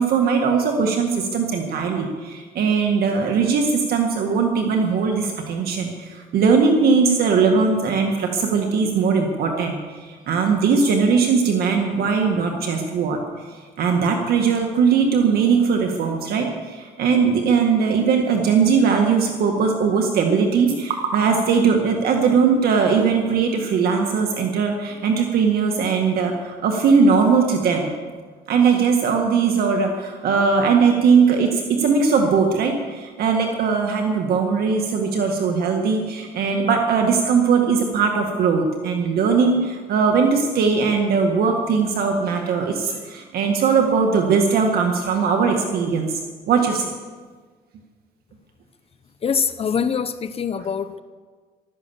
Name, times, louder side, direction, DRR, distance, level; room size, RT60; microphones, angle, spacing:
voice 1, 0.0-27.9 28.5-46.1 46.5-46.9, right 5 dB, 65° right, 3 dB, 1.8 m, -20 dB
voice 2, 49.2-51.0, left 6 dB, 35° left, 11 dB, 0.7 m, -24 dB
15.0 x 13.0 x 7.1 m, 1.5 s
cardioid pair, 110°, 17 cm